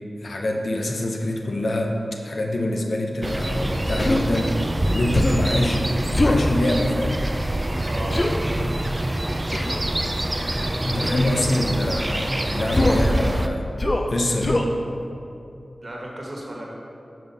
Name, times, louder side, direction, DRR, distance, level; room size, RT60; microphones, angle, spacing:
voice 1, 0.2-2.0 2.2-4.6 4.9-7.3 10.9-13.7 14.1-14.7, left 1 dB, 70° left, 1 dB, 0.7 m, -25 dB
sound 1, 3.2-13.5, right 1 dB, 30° right, 0.4 m, -25 dB
Human voice, 4.0-4.3 5.1-5.5 6.1-6.4 8.1-8.3 9.5-9.8 11.0-11.3 12.7-13.1 13.8-14.1 14.4-14.7, left 1 dB, 35° left, 0.6 m, -22 dB
voice 2, 7.8-8.6 11.1-11.2 12.4-12.5 15.8-16.7, right 1 dB, 50° right, -3 dB, 1.5 m, -35 dB
5.4 x 5.4 x 5.4 m, 2.6 s
cardioid pair, 45°, 0 cm